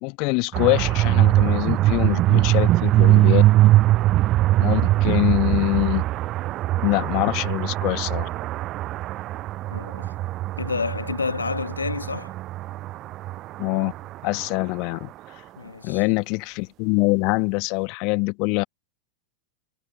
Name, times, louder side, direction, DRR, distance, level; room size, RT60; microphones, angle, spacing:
voice 1, 0.0-3.4 4.6-6.0 6.8-8.3 13.6-13.9 14.2-15.1 15.8-18.6, left 31 dB, 45° left, 1.6 m, -24 dB
sound 1, 0.5-14.4, right 15 dB, 35° right, 0.4 m, -21 dB
voice 2, 9.7-10.2 10.6-12.3 15.6-16.0, left 4 dB, 75° left, 1.4 m, -29 dB
figure-of-eight pair, 90°, 0 cm